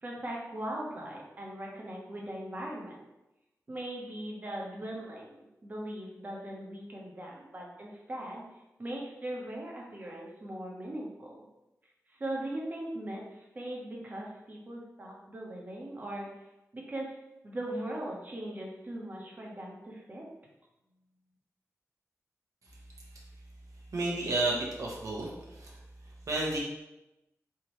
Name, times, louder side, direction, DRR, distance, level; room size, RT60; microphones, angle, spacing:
voice 1, 0.0-3.0 3.7-5.4 5.6-8.4 8.8-11.4 12.1-16.3 16.7-17.2 17.4-20.3, right 1 dB, 35° right, -2 dB, 1.0 m, -39 dB
voice 2, 23.9-25.7 26.3-26.6, right 2 dB, 80° right, -3 dB, 1.1 m, -31 dB
4.5 x 3.6 x 3.0 m, 0.95 s
wide cardioid pair, 145°, 5 cm